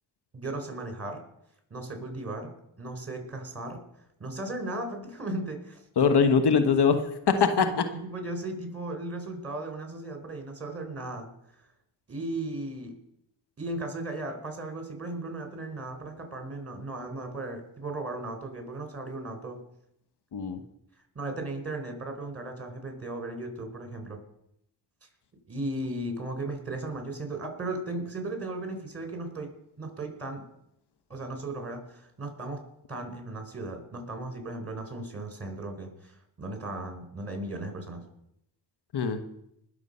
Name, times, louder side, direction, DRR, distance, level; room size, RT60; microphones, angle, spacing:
voice 1, 0.3-1.2 1.7-2.5 2.8-3.8 4.2-5.8 7.3-7.6 8.0-11.3 12.1-12.9 13.6-19.6 21.1-24.2 25.5-29.5 29.8-30.5 31.1-32.6 32.9-38.0, right 2 dB, 30° right, 4 dB, 4.7 m, -36 dB
voice 2, 6.0-7.7 20.3-20.6 38.9-39.2, left 5 dB, 60° left, 9 dB, 1.4 m, -22 dB
20.0 x 7.2 x 5.6 m, 0.76 s
supercardioid pair, 50°, 45 cm